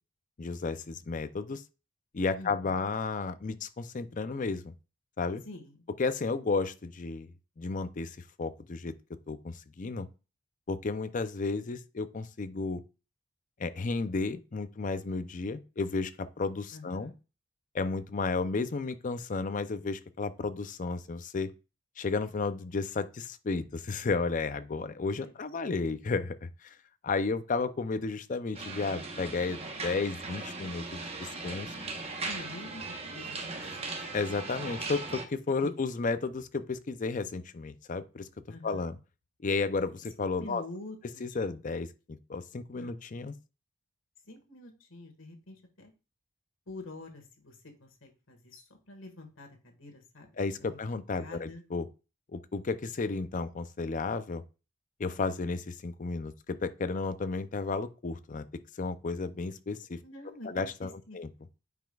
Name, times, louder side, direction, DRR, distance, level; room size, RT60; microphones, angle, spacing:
voice 1, 0.4-1.6 2.1-4.7 5.2-5.4 6.0-8.9 9.3-10.1 10.7-12.8 13.6-17.1 17.7-21.5 22.0-26.8 27.0-31.7 34.1-38.3 38.6-39.0 39.4-40.6 41.2-43.3 50.4-51.9 52.3-54.4 55.0-58.5 58.8-60.0 60.4-61.3, left 4 dB, 40° left, 0.5 m, -33 dB
voice 2, 2.3-2.9 5.4-5.8 16.7-17.1 25.2-25.7 32.2-32.8 33.1-34.0 35.6-35.7 38.5-38.9 40.4-41.3 42.8-43.0 44.3-45.9 46.7-50.3 50.6-50.8 51.1-51.6 60.0-61.2, left 2 dB, 70° left, 1.7 m, -47 dB
sound 1, 28.5-35.3, right 3 dB, 30° right, 1.1 m, -39 dB
9.1 x 5.1 x 2.4 m
head